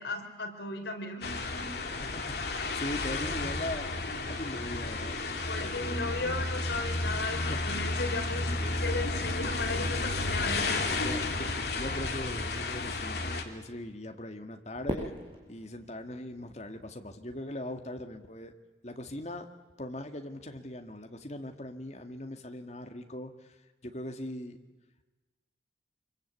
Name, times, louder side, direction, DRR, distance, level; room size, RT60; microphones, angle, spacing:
voice 1, 0.0-1.7 5.5-11.1, left 2 dB, 75° left, 3 dB, 4.6 m, -36 dB
sound 1, 1.2-13.4, left 3 dB, 60° left, 2.6 m, -32 dB
voice 2, 2.0-3.9 4.3-5.2 5.6-6.0 7.5-7.7 8.6-8.9 10.1-10.2 11.0-11.5 11.7-15.1 15.4-18.5 18.8-19.5 19.8-24.6, left 1 dB, 40° left, 6 dB, 2.0 m, -40 dB
Fireworks, 14.9-17.2, equal, 30° right, 5.7 m, -40 dB
25.5 x 23.5 x 8.5 m, 1.2 s
head